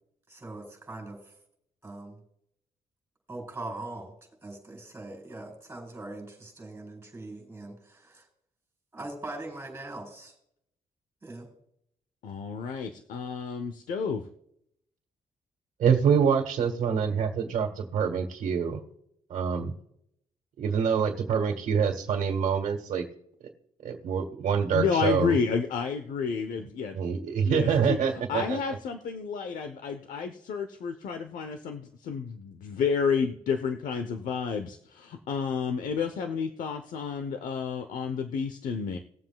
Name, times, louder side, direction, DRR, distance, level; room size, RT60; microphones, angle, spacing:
voice 1, 0.3-1.3 1.8-2.2 3.3-4.1 4.4-8.2 8.9-10.3 11.2-11.5, right 2 dB, 15° right, 1 dB, 4.6 m, -41 dB
voice 2, 12.2-14.3 24.7-27.0 27.4-28.0 28.3-39.0, left 6 dB, 80° left, 7 dB, 0.9 m, -30 dB
voice 3, 15.8-18.8 19.3-19.7 20.6-23.1 23.8-25.4 26.9-28.6, right 7 dB, 75° right, 1 dB, 1.6 m, -26 dB
20.5 x 7.7 x 2.3 m, 0.72 s
cardioid pair, 130°, 14 cm